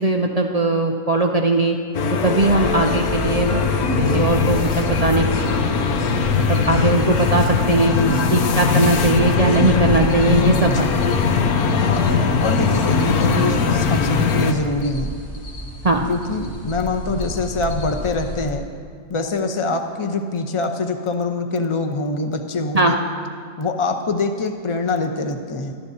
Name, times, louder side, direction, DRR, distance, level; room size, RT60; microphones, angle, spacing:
voice 1, 0.0-1.8 2.1-3.7 4.1-5.5 6.4-7.9 8.3-10.9 15.8-16.0 22.7-22.9, right 2 dB, 75° right, 2 dB, 0.3 m, -19 dB
sound 1, 1.9-14.5, left 5 dB, 85° left, 1.3 m, -20 dB
sound 2, 2.4-18.5, equal, 65° left, 2.0 m, -33 dB
voice 2, 3.8-4.2 7.9-8.2 10.6-10.9 11.7-12.1 12.4-15.1 16.1-18.6 19.1-23.0 23.6-25.8, left 3 dB, 25° left, 4 dB, 0.7 m, -24 dB
25.5 x 11.5 x 2.8 m, 2.1 s
omnidirectional pair, 1.5 m